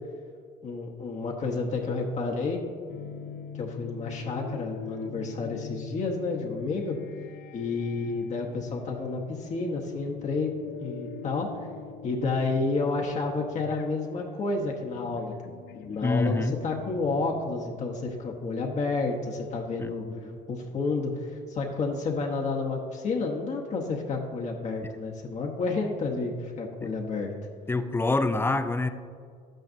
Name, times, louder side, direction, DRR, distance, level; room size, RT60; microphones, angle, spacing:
voice 1, 0.6-2.6 3.5-7.0 7.5-10.5 10.8-11.7 12.0-15.3 15.7-27.3, left 3 dB, 45° left, 0 dB, 0.9 m, -30 dB
sound 1, 2.9-18.0, left 8 dB, 80° left, 0.4 m, -43 dB
voice 2, 16.0-16.5 19.8-20.4 26.8-26.9 27.7-28.9, left 2 dB, 15° left, 10 dB, 0.4 m, -26 dB
10.5 x 8.9 x 2.6 m, 2.2 s
cardioid pair, 110°, 17 cm